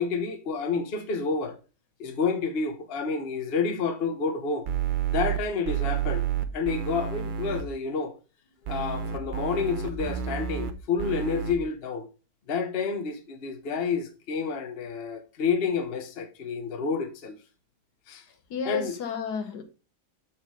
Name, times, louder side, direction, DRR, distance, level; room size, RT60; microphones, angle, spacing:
voice 1, 0.0-1.6 2.0-4.7 5.1-6.2 6.5-8.1 8.7-12.1 12.5-17.3 18.1-18.2 18.7-18.9, left 5 dB, 45° left, 1.0 m, -29 dB
sound 1, 4.7-5.4 5.7-7.6 8.7-10.7 11.0-11.5, right 8 dB, 65° right, 0.4 m, -30 dB
voice 2, 18.5-19.6, left 6 dB, 75° left, 1.6 m, -32 dB
7.2 x 3.8 x 4.7 m
omnidirectional pair, 1.7 m